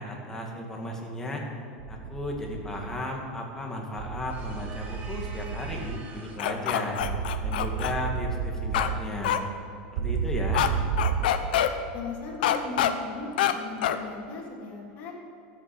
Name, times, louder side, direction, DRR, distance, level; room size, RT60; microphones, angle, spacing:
voice 1, 0.0-1.4 1.9-7.0 7.4-9.3 9.9-10.7, left 1 dB, 10° left, 0 dB, 2.3 m, -35 dB
sound 1, 1.8-3.0 4.0-6.0 7.0-9.0 10.0-11.3, right 6 dB, 65° right, 0.9 m, -31 dB
sound 2, 4.3-6.6, right 3 dB, 30° right, 1.9 m, -46 dB
sound 3, 6.4-7.9 8.7-8.9 9.2-9.4 10.5-10.7 11.0-11.7 12.4-12.9 13.4-13.5 13.8-14.0, left 12 dB, 85° left, 1.0 m, -25 dB
voice 2, 11.9-15.1, left 3 dB, 40° left, -5 dB, 3.5 m, -38 dB
13.5 x 8.8 x 7.9 m, 2.6 s
supercardioid pair, 145°, 5 cm